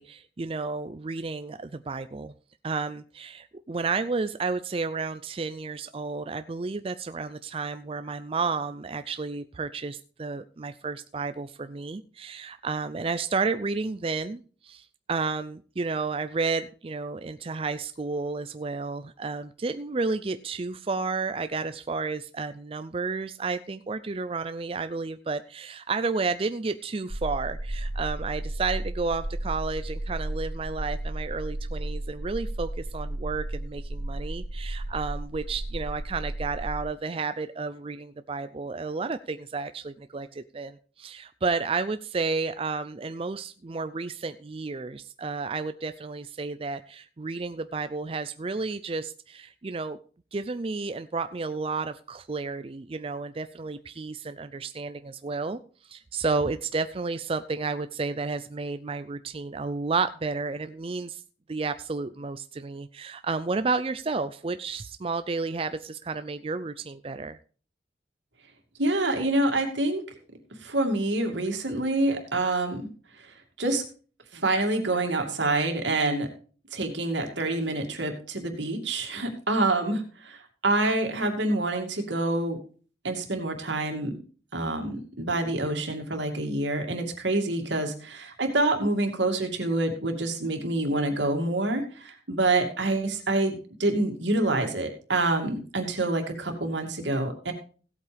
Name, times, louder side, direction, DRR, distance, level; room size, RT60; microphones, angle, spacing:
voice 1, 0.0-2.3 2.6-50.0 50.3-61.2 61.5-67.4, right 4 dB, 30° right, 11 dB, 0.4 m, -31 dB
sound 1, 27.1-36.8, right 1 dB, 55° right, 2.8 m, -33 dB
voice 2, 68.8-70.0 70.6-72.9 73.6-73.8 74.3-76.3 76.7-80.4 80.6-82.6 83.0-84.1 84.5-97.5, right 2 dB, 85° right, 4 dB, 2.5 m, -27 dB
16.5 x 8.4 x 3.4 m, 0.39 s
head